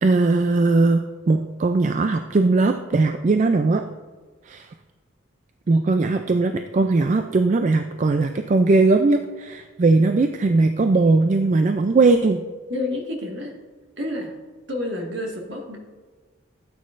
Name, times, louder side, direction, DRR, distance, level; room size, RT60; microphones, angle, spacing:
voice 1, 0.0-3.8 4.5-4.7 5.7-12.4, right 3 dB, 35° right, 7 dB, 0.3 m, -19 dB
voice 2, 12.7-13.5 14.0-14.3 14.7-15.8, left 1 dB, 60° right, 0 dB, 1.8 m, -29 dB
13.5 x 8.3 x 2.5 m, 1.4 s
head